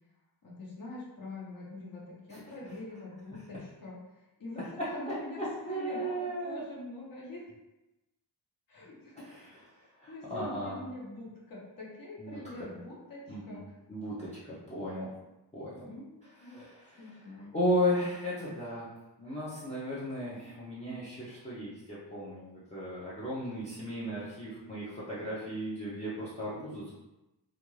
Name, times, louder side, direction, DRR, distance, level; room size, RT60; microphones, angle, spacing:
voice 1, 0.4-7.5 8.7-9.6 10.1-13.6 15.8-16.7 17.0-17.9, left 2 dB, 50° left, -5 dB, 0.9 m, -44 dB
voice 2, 5.4-6.6 9.7-10.8 12.2-12.7 13.3-13.6 13.9-15.1 15.5-15.9 16.4-18.9 19.2-26.9, equal, 15° left, -10 dB, 0.5 m, -35 dB
2.4 x 2.3 x 3.1 m, 0.98 s
wide cardioid pair, 140°, 44 cm